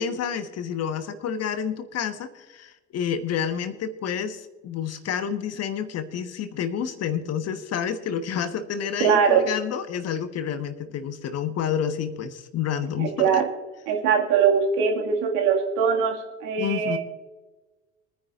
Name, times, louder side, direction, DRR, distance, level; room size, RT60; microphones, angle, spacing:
voice 1, 0.0-13.4 16.6-17.0, left 8 dB, 45° left, 10 dB, 1.3 m, -29 dB
voice 2, 9.0-9.4 13.0-13.5 13.9-17.0, right 6 dB, 60° right, 2 dB, 2.1 m, -21 dB
24.5 x 10.0 x 2.5 m, 1.2 s
figure-of-eight pair, 60°, 35 cm